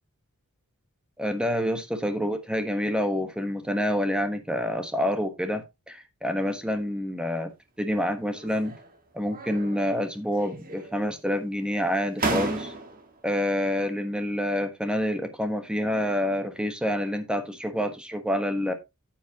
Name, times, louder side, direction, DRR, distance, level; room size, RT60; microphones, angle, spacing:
voice 1, 1.2-7.5 7.8-8.7 9.1-12.7 13.2-18.7, equal, 5° right, 7 dB, 1.2 m, -27 dB
sound 1, 8.3-8.9 9.3-10.1 10.4-11.1 11.8-11.9 12.2-13.1, right 3 dB, 40° right, 1.7 m, -33 dB
9.3 x 8.5 x 2.9 m, 0.22 s
head